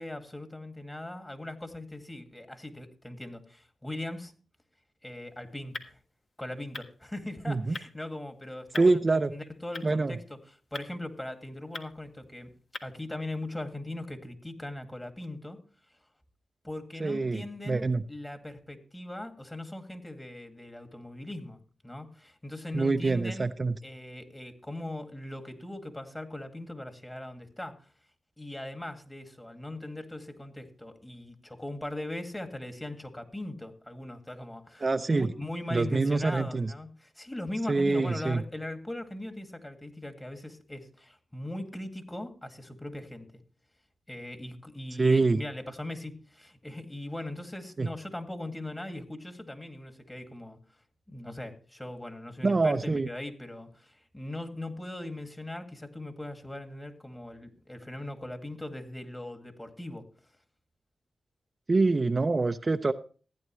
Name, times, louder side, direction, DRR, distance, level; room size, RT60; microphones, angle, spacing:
voice 1, 0.0-4.3 5.0-6.0 6.4-10.4 10.7-12.5 12.8-15.6 16.6-21.6 21.8-23.5 23.8-27.8 28.4-43.3 44.1-50.6 51.1-60.1, left 1 dB, 20° left, 6 dB, 2.2 m, -40 dB
sound 1, 5.0-13.1, left 3 dB, 60° left, 1.5 m, -47 dB
voice 2, 7.5-7.8 8.8-9.3 9.8-10.1 17.0-18.0 22.7-23.8 34.8-35.3 35.7-36.7 37.7-38.4 45.0-45.4 47.8-47.9 52.4-53.1 61.7-62.9, right 3 dB, 40° right, 8 dB, 0.6 m, -25 dB
15.5 x 9.4 x 3.1 m, 0.38 s
supercardioid pair, 45°, 0 cm